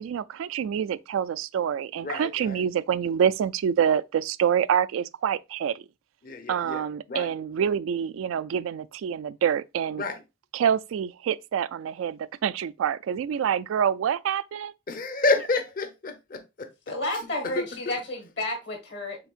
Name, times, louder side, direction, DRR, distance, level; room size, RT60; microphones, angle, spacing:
voice 1, 0.0-5.8 6.5-10.0 10.5-14.7, right 8 dB, 85° right, 0.3 m, -26 dB
voice 2, 2.0-2.6 6.2-7.3 10.0-10.2 14.9-16.7 17.6-17.7, left 3 dB, 45° left, 0.8 m, -29 dB
voice 3, 16.9-19.2, left 1 dB, 60° left, 1.5 m, -31 dB
5.8 x 3.6 x 2.4 m
head